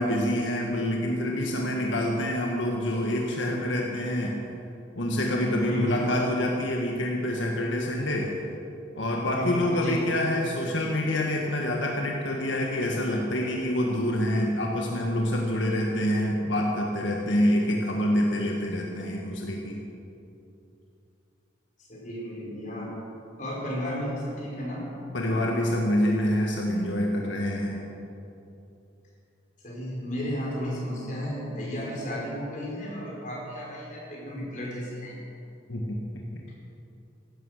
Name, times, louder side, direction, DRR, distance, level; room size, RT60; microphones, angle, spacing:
voice 1, 0.0-4.4 4.9-8.3 8.9-19.8 25.1-27.8 35.7-36.0 36.3-36.4, left 1 dB, 90° left, 0 dB, 1.7 m, -26 dB
voice 2, 5.7-6.0 7.8-7.9 9.4-10.1 21.8-22.9 23.4-24.9 29.6-35.1, equal, 45° left, -4 dB, 4.7 m, -33 dB
16.0 x 12.0 x 6.5 m, 2.8 s
head